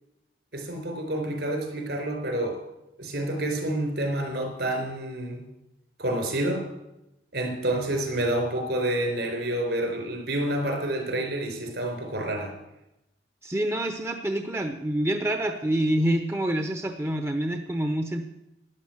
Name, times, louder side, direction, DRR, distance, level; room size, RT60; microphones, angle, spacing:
voice 1, 0.5-2.6 3.0-5.5 6.0-6.7 7.3-12.5, right 1 dB, 65° right, 4 dB, 4.2 m, -28 dB
voice 2, 13.4-18.2, right 1 dB, 15° right, 6 dB, 0.8 m, -27 dB
13.0 x 10.5 x 7.9 m, 0.90 s
head